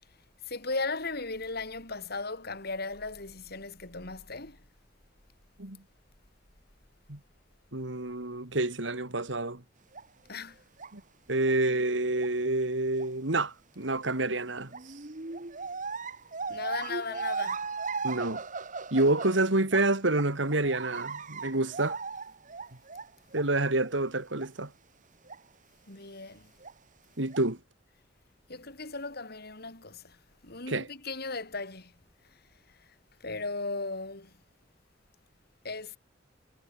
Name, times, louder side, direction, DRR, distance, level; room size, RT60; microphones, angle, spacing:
voice 1, 0.4-4.6 10.3-10.6 16.5-17.7 25.9-26.5 28.5-31.9 32.2-32.4 32.7-32.9 33.2-34.3 35.6-36.0, left 3 dB, 55° left, 4.8 m, -37 dB
voice 2, 7.7-9.6 10.9-11.0 11.3-14.7 18.0-18.4 18.9-22.0 23.3-24.7 27.2-27.6 30.7-30.9, right 2 dB, 75° right, 2.8 m, -28 dB
sound 1, 9.9-10.0 10.8-10.9 11.4-11.5 12.2-12.3 13.0-13.1 13.9-14.0 14.7-19.9 20.1-23.5 23.8-23.9 24.4-24.5 25.3-25.4 26.6-26.7 27.3-27.4, right 4 dB, 45° right, 1.7 m, -37 dB
head